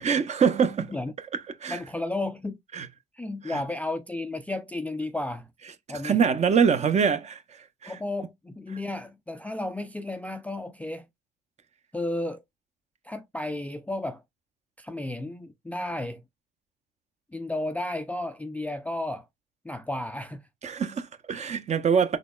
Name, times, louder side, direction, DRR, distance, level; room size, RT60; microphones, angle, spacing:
voice 1, 0.0-0.9 1.3-1.8 2.7-2.9 3.5-3.6 5.9-8.0 20.6-22.2, right 6 dB, 35° right, 0.6 m, -24 dB
voice 2, 1.7-2.6 3.2-5.5 5.9-6.2 7.9-11.1 11.9-12.4 13.0-14.2 14.8-16.2 17.3-19.3 19.6-20.4, left 2 dB, 5° left, 0.3 m, -33 dB
4.0 x 3.1 x 2.3 m
supercardioid pair, 70°, 20 cm